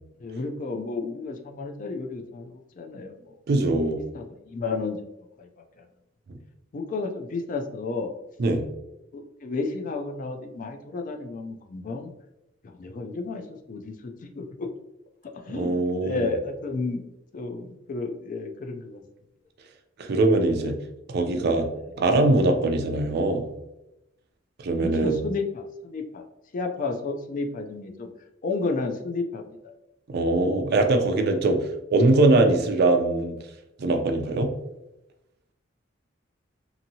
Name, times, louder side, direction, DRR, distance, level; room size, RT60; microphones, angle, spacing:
voice 1, 0.2-3.4 4.1-5.0 5.4-5.5 5.8-5.9 6.7-8.1 9.1-12.1 12.6-14.7 15.5-17.0 17.3-19.0 24.8-26.2 26.5-28.1 28.4-29.7, left 3 dB, 45° left, 4 dB, 0.3 m, -32 dB
voice 2, 3.5-4.0 6.3-6.4 8.4-8.6 15.5-16.3 20.0-20.8 21.1-21.7 22.0-23.5 24.6-25.2 30.1-31.6 31.9-33.4 33.8-34.5, right 2 dB, 55° right, 5 dB, 0.4 m, -22 dB
2.8 x 2.6 x 2.7 m, 0.89 s
head